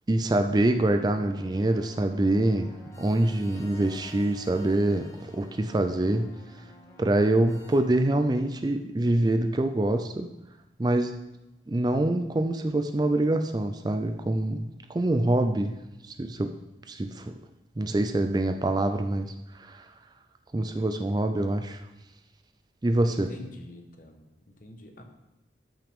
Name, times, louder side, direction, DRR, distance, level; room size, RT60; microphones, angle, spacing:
voice 1, 0.1-6.3 7.0-10.3 10.8-11.2 11.7-15.7 16.1-16.5 16.9-17.3 17.8-19.9 20.5-21.8 22.8-23.3, right 1 dB, 25° right, 7 dB, 0.4 m, -25 dB
sound 1, 0.6-7.8, left 1 dB, 15° left, 1.2 m, -50 dB
voice 2, 23.1-25.0, left 1 dB, 50° left, 4 dB, 1.2 m, -45 dB
13.0 x 5.8 x 3.6 m, 0.95 s
head